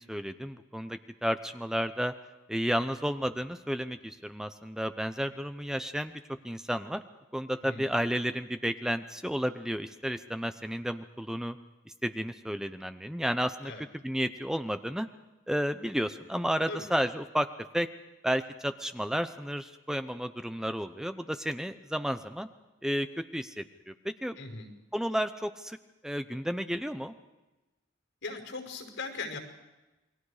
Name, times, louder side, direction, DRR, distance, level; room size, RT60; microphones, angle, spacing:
voice 1, 0.0-2.1 2.5-7.0 7.3-11.6 12.0-13.7 14.0-15.1 15.5-17.5 17.7-17.9 18.2-22.5 22.8-24.4 24.9-25.8 26.0-27.1, equal, 5° right, 9 dB, 0.7 m, -32 dB
voice 2, 24.4-24.7 28.2-29.4, left 3 dB, 90° left, 3 dB, 5.5 m, -39 dB
28.5 x 21.5 x 5.0 m, 1.1 s
head